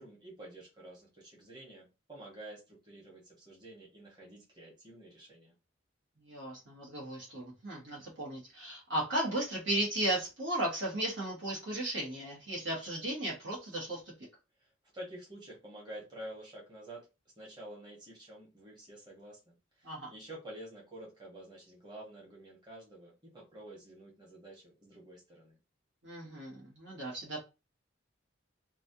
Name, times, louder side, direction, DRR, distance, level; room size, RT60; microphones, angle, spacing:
voice 1, 0.0-5.5 14.6-17.1 17.4-25.6, right 1 dB, 20° right, -4 dB, 1.2 m, -49 dB
voice 2, 6.2-14.0 19.8-20.1 26.0-27.4, right 1 dB, 70° right, -4 dB, 1.2 m, -35 dB
3.1 x 2.4 x 2.7 m, 0.28 s
head